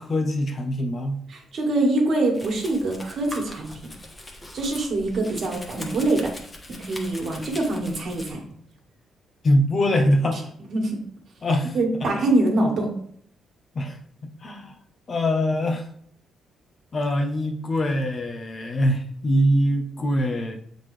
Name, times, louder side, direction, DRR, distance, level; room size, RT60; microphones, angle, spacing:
voice 1, 0.0-1.2 9.4-10.5 11.4-11.8 12.0-12.1 13.7-14.7 15.1-15.9 16.9-20.6, equal, 40° left, 4 dB, 0.9 m, -23 dB
voice 2, 1.3-3.7 4.5-6.3 6.7-8.4 10.7-11.0 11.7-12.9, right 2 dB, 60° right, 0 dB, 1.8 m, -24 dB
Domestic sounds home sounds, 2.3-8.3, left 1 dB, 20° left, 1.2 m, -41 dB
7.4 x 4.0 x 3.3 m, 0.63 s
cardioid pair, 90°, 0 cm